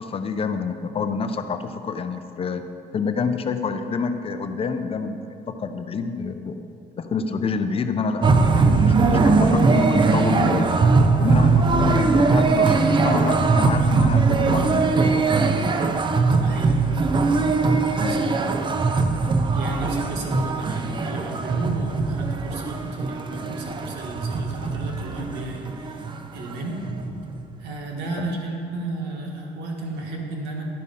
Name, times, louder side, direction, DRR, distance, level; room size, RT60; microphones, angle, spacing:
voice 1, 0.0-2.6 2.9-5.2 5.5-6.6 7.0-10.7 11.2-15.3 28.2-28.4, left 5 dB, 35° left, 8 dB, 0.5 m, -27 dB
sound 1, 8.2-26.2 26.5-26.6 26.8-27.5, right 4 dB, 30° right, 0.5 m, -20 dB
voice 2, 16.4-16.9 17.9-18.3 19.5-26.0 26.3-26.8 27.6-30.6, right 2 dB, 85° right, 0 dB, 1.5 m, -33 dB
11.0 x 5.3 x 5.4 m, 2.6 s
cardioid pair, 110°, 17 cm